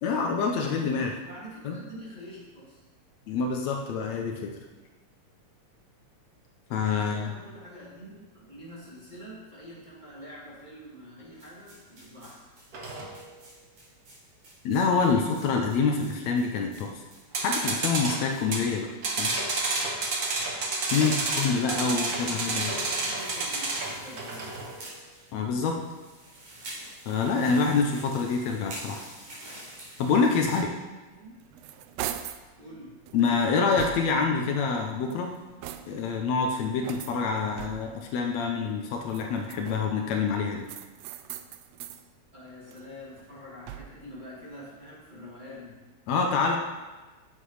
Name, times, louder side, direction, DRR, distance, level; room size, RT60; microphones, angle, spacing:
voice 1, 0.0-1.1 1.6-1.8 3.3-4.5 6.7-7.3 14.6-16.9 17.4-18.9 19.2-19.3 20.9-22.7 25.3-25.7 27.1-29.0 30.0-30.7 33.1-35.3 35.9-40.6 46.1-46.6, left 5 dB, 75° left, 2 dB, 2.1 m, -26 dB
voice 2, 1.2-2.8 6.9-12.5 20.9-24.6 31.1-31.4 32.6-33.0 42.3-45.8, equal, 15° right, -7 dB, 2.5 m, -45 dB
sound 1, 11.4-19.2 19.5-19.6 19.9-20.0 20.6-30.6, right 1 dB, 65° right, 4.8 m, -47 dB
sound 2, 12.7-13.2 17.3-18.7 19.0-24.7, right 3 dB, 50° right, 1.2 m, -30 dB
sound 3, 31.2-32.5 33.1-34.3 34.9-36.2 36.8-38.1 39.0-40.0 40.6-42.0 42.5-44.1, right 11 dB, 80° right, 1.4 m, -41 dB
9.9 x 7.5 x 4.9 m, 1.2 s
omnidirectional pair, 3.3 m